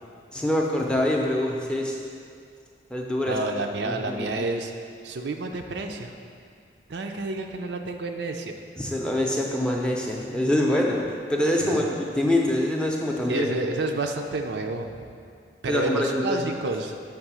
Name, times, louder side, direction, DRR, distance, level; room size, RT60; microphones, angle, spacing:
voice 1, 0.3-2.0 2.9-3.4 3.8-4.5 8.8-11.0 11.3-11.8 12.1-13.5 15.7-16.5, left 1 dB, 5° left, -1 dB, 0.5 m, -25 dB
voice 2, 3.3-4.7 5.0-6.2 6.9-8.5 11.6-12.0 13.3-15.2 15.6-16.9, right 2 dB, 80° right, 4 dB, 0.5 m, -29 dB
6.6 x 3.6 x 6.1 m, 2.2 s
head